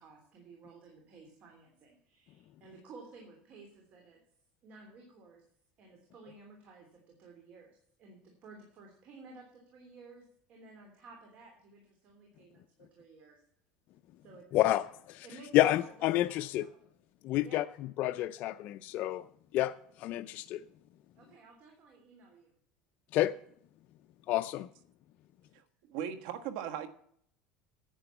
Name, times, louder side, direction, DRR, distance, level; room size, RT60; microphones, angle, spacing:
voice 1, 0.0-4.2 4.6-5.4 5.8-10.2 10.5-13.4 14.2-14.8 15.2-15.9 16.3-16.8 17.4-17.6 21.2-22.5, right 3 dB, 45° right, 3.2 m, -55 dB
voice 2, 14.5-14.8 15.1-15.3 15.5-16.7 17.2-17.6 18.0-19.2 19.5-20.6 23.1-23.3 24.3-24.7, left 14 dB, 55° left, 0.5 m, -29 dB
voice 3, 25.5-26.9, right 9 dB, 75° right, 1.4 m, -39 dB
9.9 x 8.7 x 6.9 m
supercardioid pair, 130°, 3 cm